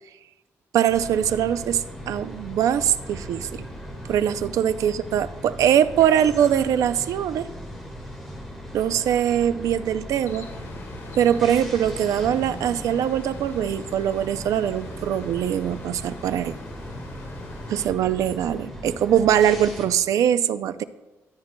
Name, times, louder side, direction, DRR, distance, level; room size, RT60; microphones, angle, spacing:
voice 1, 0.7-3.6 4.1-7.5 8.7-10.5 11.2-16.5 17.7-20.8, right 9 dB, 85° right, 13 dB, 0.4 m, -22 dB
sound 1, 0.9-19.9, equal, ahead, 1.6 m, -38 dB
sound 2, 10.2-17.9, left 2 dB, 55° left, 2.0 m, -42 dB
14.5 x 8.9 x 2.2 m, 1.1 s
wide cardioid pair, 170°, 6 cm